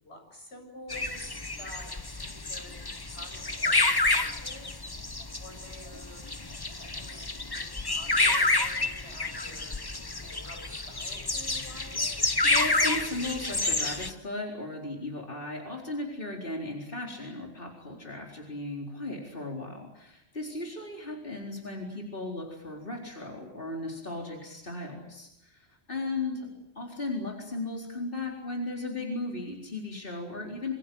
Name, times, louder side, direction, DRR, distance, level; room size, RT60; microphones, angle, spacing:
voice 1, 0.0-2.7 3.1-4.8 5.3-6.2 6.9-9.7 10.2-12.1 20.5-20.8 21.1-21.9 26.4-26.6, left 1 dB, 80° left, 3 dB, 7.7 m, -50 dB
sound 1, 0.9-14.1, left 2 dB, 20° left, 1.1 m, -29 dB
voice 2, 12.4-26.5 26.8-30.7, left 2 dB, 55° left, 0 dB, 4.5 m, -36 dB
27.0 x 25.5 x 7.8 m, 0.77 s
omnidirectional pair, 1.1 m